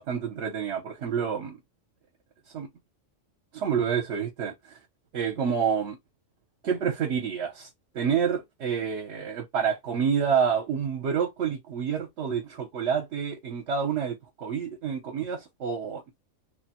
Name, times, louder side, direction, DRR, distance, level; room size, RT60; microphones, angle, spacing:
voice 1, 0.0-1.6 2.5-2.7 3.5-4.8 5.1-6.0 6.6-7.7 7.9-16.1, right 7 dB, 65° right, 1.0 m, -28 dB
3.1 x 2.0 x 2.8 m
omnidirectional pair, 1.4 m